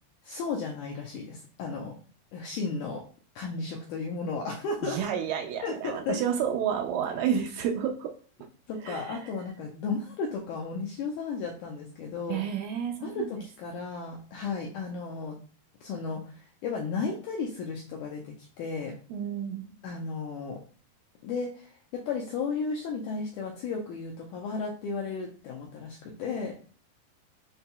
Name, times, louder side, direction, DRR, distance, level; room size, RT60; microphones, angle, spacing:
voice 1, 0.2-1.9 2.3-3.0 3.3-5.0 5.6-6.2 8.7-12.4 13.0-15.4 15.8-18.9 19.8-20.6 21.2-26.6, left 4 dB, 90° left, -1 dB, 1.8 m, -34 dB
voice 2, 4.8-8.1 8.8-9.3 12.3-13.3 19.1-19.7, right 8 dB, 80° right, 4 dB, 2.0 m, -30 dB
6.6 x 2.8 x 2.2 m, 0.42 s
omnidirectional pair, 4.2 m